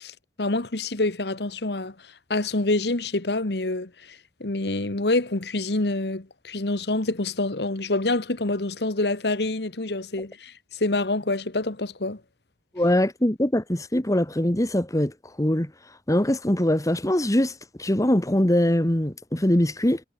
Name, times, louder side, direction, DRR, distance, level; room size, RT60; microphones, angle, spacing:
voice 1, 0.0-1.9 2.3-12.2, left 2 dB, 65° left, 1.6 m, -27 dB
voice 2, 12.7-15.7 16.1-20.0, left 1 dB, 20° left, 1.6 m, -22 dB
head